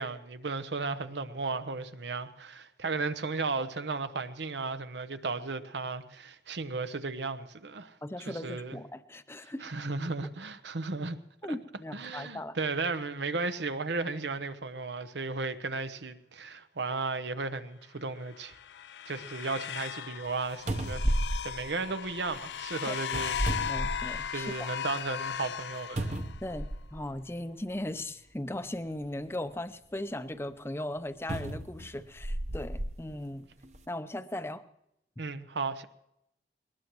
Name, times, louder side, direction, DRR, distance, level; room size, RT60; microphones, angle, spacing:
voice 1, 0.0-8.0 8.3-8.8 9.6-11.2 11.5-11.6 11.9-18.5 19.1-21.1 21.4-23.7 24.3-26.1 35.2-35.8, right 3 dB, 80° right, 0.9 m, -35 dB
voice 2, 8.0-9.6 11.4-12.6 22.9-23.0 23.7-24.7 26.4-33.5 33.9-34.6, left 1 dB, 15° left, 0.6 m, -38 dB
sound 1, 18.3-26.6, left 9 dB, 75° left, 0.4 m, -37 dB
sound 2, 20.3-20.4 20.7-22.4 23.0-24.5 24.9-25.0 26.0-27.1 28.0-28.1 31.3-32.9 33.6-33.8, right 1 dB, 40° right, 0.9 m, -33 dB
21.0 x 19.0 x 3.1 m
head